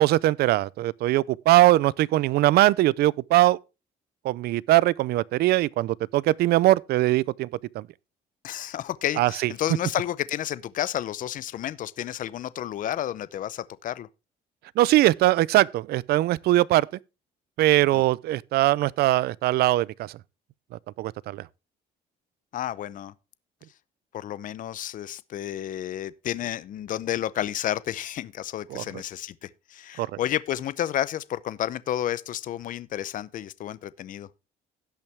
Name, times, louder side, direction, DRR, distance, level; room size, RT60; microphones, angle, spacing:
voice 1, 0.0-3.6 4.2-7.5 7.7-7.9 9.2-9.5 14.8-16.9 17.6-20.1 21.0-21.5 28.7-28.8 30.0-30.1, right 16 dB, 70° right, 0.5 m, -21 dB
voice 2, 8.4-14.1 17.9-18.0 22.5-23.1 24.1-34.3, left 11 dB, 50° left, 0.6 m, -31 dB
17.0 x 5.7 x 3.4 m
cardioid pair, 110°, 17 cm